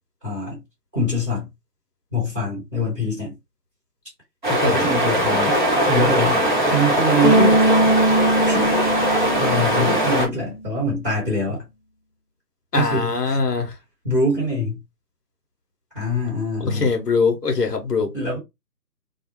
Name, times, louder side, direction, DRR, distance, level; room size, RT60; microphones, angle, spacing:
voice 1, 0.2-0.6 0.9-1.5 2.1-3.3 4.6-5.6 5.9-6.4 6.7-7.6 8.5-8.7 9.4-11.6 12.7-13.4 14.0-14.8 15.9-16.9 18.1-18.4, equal, 5° right, 1.1 m, -24 dB
sound 1, 4.4-10.3, equal, 30° right, 0.8 m, -20 dB
voice 2, 4.5-4.9 12.7-13.7 16.6-18.1, left 4 dB, 70° left, 0.9 m, -22 dB
Bass guitar, 7.2-10.4, right 1 dB, 35° left, 0.9 m, -20 dB
2.7 x 2.1 x 2.8 m
figure-of-eight pair, 155°, 50 cm